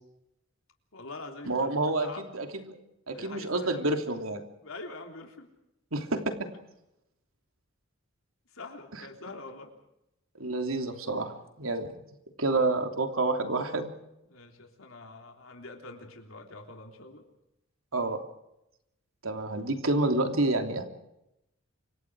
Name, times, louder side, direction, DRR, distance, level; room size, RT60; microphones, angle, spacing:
voice 1, 0.9-1.5 2.0-2.2 3.1-3.9 4.6-5.5 8.5-9.7 14.3-17.2, left 3 dB, 80° left, 2 dB, 3.4 m, -44 dB
voice 2, 1.4-2.8 3.1-4.4 5.9-6.5 10.4-11.9 12.4-13.9 17.9-18.2 19.2-20.9, right 2 dB, 85° right, 5 dB, 3.2 m, -29 dB
29.5 x 25.0 x 4.9 m, 0.86 s
head